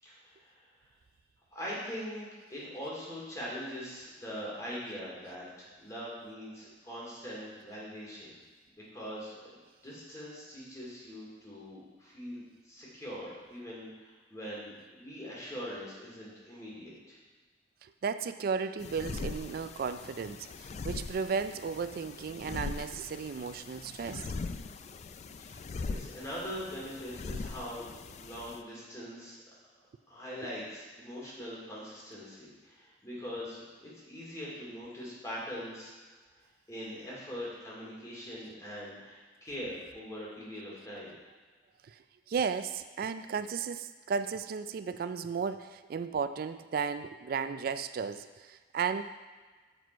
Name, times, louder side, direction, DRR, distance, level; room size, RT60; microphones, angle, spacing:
voice 1, 0.0-0.6 1.5-8.4 8.8-9.4 9.8-17.2 25.8-27.8 28.2-29.4 30.1-35.9 36.7-41.1, equal, 20° left, -6 dB, 2.4 m, -42 dB
voice 2, 17.8-24.3 41.9-42.0 42.3-49.0, right 6 dB, 55° right, 11 dB, 0.3 m, -34 dB
sound 1, 18.8-28.6, left 4 dB, 40° left, 0.3 m, -41 dB
7.6 x 5.0 x 4.5 m, 1.4 s
head